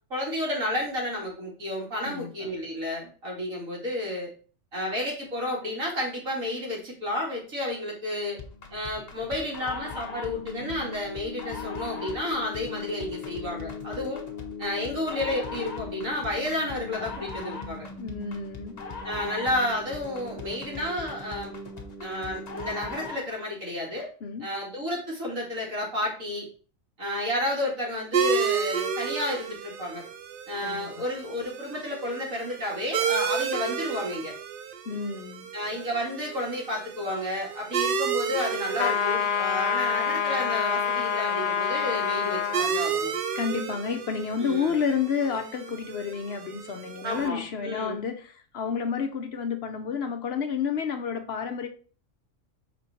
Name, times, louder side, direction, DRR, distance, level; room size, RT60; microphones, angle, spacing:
voice 1, 0.1-4.3 4.7-8.4 8.7-14.2 14.6-17.9 19.0-21.5 22.0-24.1 24.4-26.5 27.0-30.0 30.5-34.3 35.5-43.1 44.4-44.8 47.0-48.0, left 1 dB, 90° right, 2.9 m, -31 dB
voice 2, 2.0-2.5 18.0-18.7 24.2-24.5 30.6-30.9 34.9-35.5 43.3-51.7, left 6 dB, 60° left, 0.8 m, -30 dB
sound 1, 8.4-23.3, left 4 dB, 35° left, 1.0 m, -38 dB
sound 2, 28.1-47.3, right 6 dB, 55° right, 0.6 m, -32 dB
sound 3, 38.8-42.6, left 7 dB, 75° left, 0.4 m, -26 dB
6.0 x 4.5 x 4.2 m
omnidirectional pair, 1.4 m